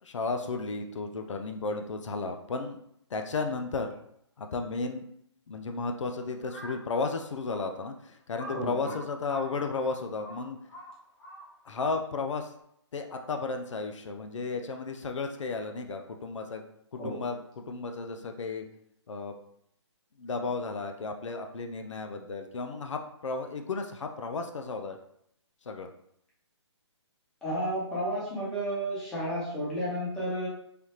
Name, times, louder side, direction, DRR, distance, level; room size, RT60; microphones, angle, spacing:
voice 1, 0.0-2.8 3.1-3.9 4.4-5.1 5.5-10.6 11.7-12.5 12.9-16.7 16.9-18.6 19.1-19.4 20.2-25.0 25.7-25.9, left 4 dB, 85° left, 5 dB, 0.4 m, -34 dB
Crow, 6.4-6.9 7.5-7.6 8.3-11.7, right 1 dB, 35° left, 1.1 m, -44 dB
voice 2, 8.5-9.0 17.0-17.2 27.4-30.5, equal, 5° left, -9 dB, 0.9 m, -32 dB
3.3 x 2.3 x 2.8 m, 0.72 s
hypercardioid pair, 155°, 15 cm